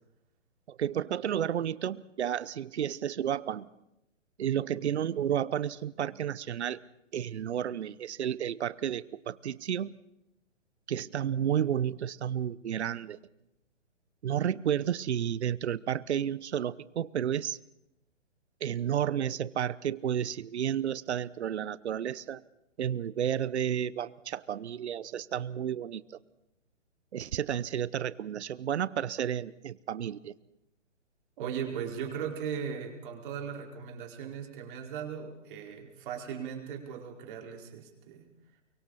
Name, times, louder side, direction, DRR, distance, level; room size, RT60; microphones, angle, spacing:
voice 1, 0.7-3.7 4.4-6.8 7.1-10.0 10.9-13.2 14.2-17.6 18.6-22.4 22.8-26.0 27.1-30.3, right 9 dB, 65° right, 19 dB, 0.9 m, -31 dB
voice 2, 31.4-38.3, right 7 dB, 45° right, 2 dB, 4.9 m, -38 dB
29.5 x 24.0 x 4.2 m, 0.86 s
hypercardioid pair, 135°, 37 cm